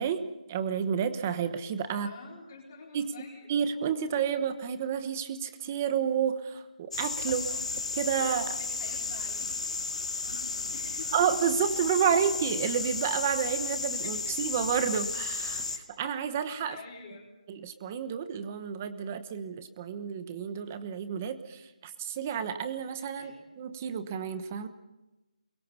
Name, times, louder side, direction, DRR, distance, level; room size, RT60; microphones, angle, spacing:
voice 1, 0.0-2.1 2.9-3.1 3.5-7.4 8.0-8.6 11.1-15.6 16.0-16.8 17.5-23.3 23.6-24.7, right 8 dB, 15° right, 11 dB, 1.1 m, -30 dB
voice 2, 1.9-3.5 4.1-4.2 7.2-7.7 8.1-11.3 12.2-12.3 14.0-14.4 15.7-15.8 16.7-17.3 23.1-23.5, left 4 dB, 25° left, -3 dB, 4.3 m, -48 dB
sound 1, 6.9-15.8, left 4 dB, 60° left, 2.7 m, -33 dB
29.0 x 23.0 x 5.7 m, 1.0 s
hypercardioid pair, 175°, 4 cm